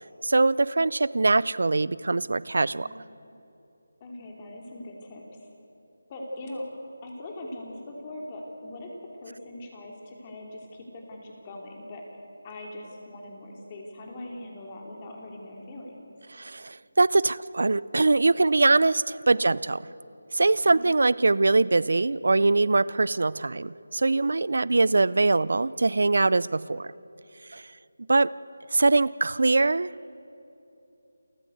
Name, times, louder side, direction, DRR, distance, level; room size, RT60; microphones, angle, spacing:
voice 1, 0.2-3.0 16.3-19.8 20.3-26.9 27.5-27.6 28.1-28.3 28.7-29.9, right 3 dB, 65° right, 20 dB, 0.5 m, -22 dB
voice 2, 4.0-5.5 6.1-6.7 7.0-8.9 9.2-16.1 19.3-19.6 20.7-20.8 24.6-24.9, left 1 dB, 20° left, 0 dB, 3.2 m, -41 dB
28.5 x 14.5 x 8.0 m, 2.9 s
figure-of-eight pair, 170°, 0 cm